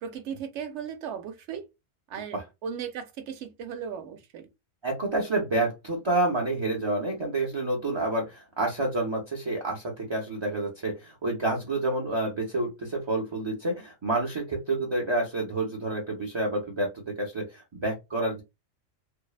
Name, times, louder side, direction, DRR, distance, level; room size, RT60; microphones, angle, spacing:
voice 1, 0.0-1.7 2.1-4.5, right 7 dB, 70° right, 0.9 m, -37 dB
voice 2, 4.8-18.4, right 2 dB, 40° right, 0.4 m, -29 dB
2.6 x 2.0 x 2.3 m
omnidirectional pair, 1.3 m